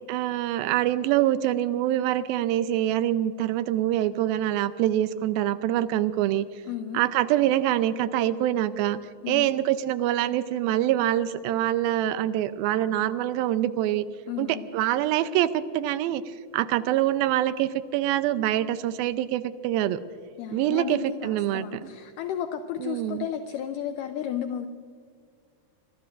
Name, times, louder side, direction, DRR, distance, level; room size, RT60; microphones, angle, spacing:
voice 1, 0.1-6.5 6.9-9.0 9.3-14.1 14.4-20.0 20.5-21.9 22.8-23.3, right 12 dB, 80° right, 12 dB, 2.4 m, -25 dB
voice 2, 6.7-7.0 9.2-9.5 14.3-14.7 20.4-24.7, left 9 dB, 80° left, 7 dB, 2.0 m, -33 dB
25.0 x 21.0 x 2.5 m, 2.1 s
omnidirectional pair, 4.3 m